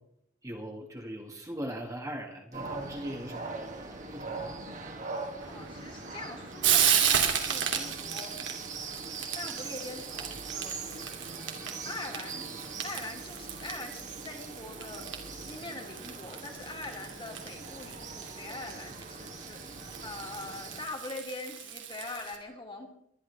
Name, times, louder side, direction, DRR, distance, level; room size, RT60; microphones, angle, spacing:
voice 1, 0.4-4.6, equal, 15° right, 1 dB, 1.7 m, -40 dB
sound 1, 2.5-20.9, right 3 dB, 40° right, 2.1 m, -42 dB
Frying (food), 5.4-22.4, right 9 dB, 75° right, 2.4 m, -34 dB
voice 2, 5.5-8.3 9.3-12.5 12.8-22.9, left 2 dB, 25° left, 2 dB, 2.4 m, -43 dB
23.5 x 11.5 x 3.3 m, 0.73 s
head